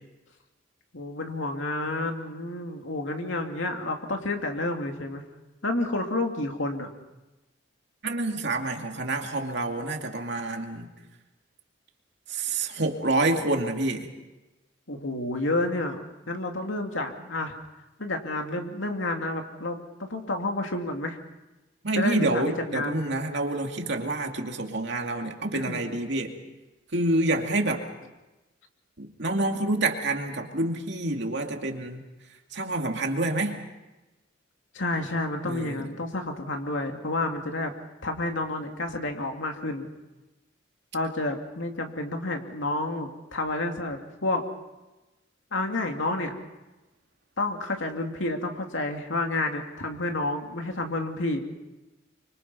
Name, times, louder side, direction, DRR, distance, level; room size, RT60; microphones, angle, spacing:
voice 1, 0.9-5.2 5.6-6.9 14.9-17.5 18.0-21.2 22.0-23.0 25.5-25.8 34.7-37.7 38.0-39.9 40.9-44.5 45.5-46.4 47.4-51.4, left 2 dB, 80° left, 3 dB, 2.6 m, -30 dB
voice 2, 8.0-10.9 12.3-14.1 21.8-26.4 26.9-27.9 29.0-32.1 32.5-33.6 35.5-35.9, right 2 dB, 65° right, 3 dB, 2.5 m, -28 dB
25.5 x 24.5 x 5.5 m, 1.1 s
head